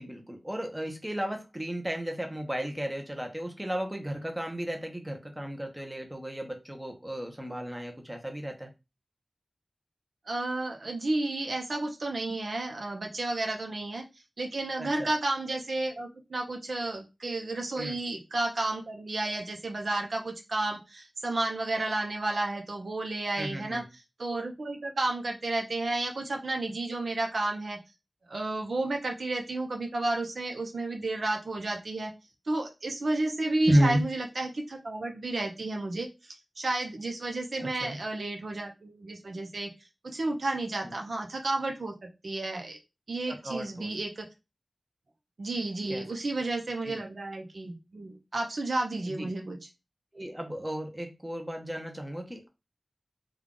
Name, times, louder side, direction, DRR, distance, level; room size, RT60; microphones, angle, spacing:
voice 1, 0.0-8.7 14.8-15.1 17.8-18.0 23.4-23.8 33.7-34.0 37.6-38.0 40.8-40.9 43.3-43.9 45.9-46.0 46.8-47.0 49.0-49.3 50.1-52.5, right 1 dB, 15° right, 3 dB, 0.8 m, -33 dB
voice 2, 10.3-14.0 14.4-23.8 24.2-27.8 28.3-32.1 32.5-39.7 40.0-42.8 43.1-44.3 45.4-49.6, right 2 dB, 75° right, 2 dB, 0.7 m, -32 dB
3.4 x 2.3 x 3.7 m, 0.26 s
wide cardioid pair, 70°, 0 cm